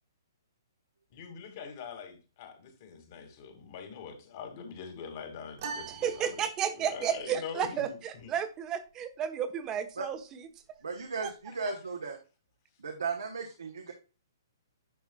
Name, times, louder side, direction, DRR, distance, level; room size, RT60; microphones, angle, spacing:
voice 1, 1.1-6.4 6.7-8.3 11.5-11.7, left 6 dB, 45° left, 5 dB, 2.1 m, -43 dB
sound 1, 5.6-7.1, right 5 dB, 50° right, 1.7 m, -42 dB
voice 2, 6.0-10.5 11.2-11.3, right 9 dB, 25° right, 9 dB, 1.1 m, -32 dB
voice 3, 10.8-12.2 12.8-13.9, right 4 dB, 75° right, 2 dB, 1.3 m, -36 dB
10.5 x 5.8 x 2.3 m, 0.32 s
figure-of-eight pair, 125°, 2 cm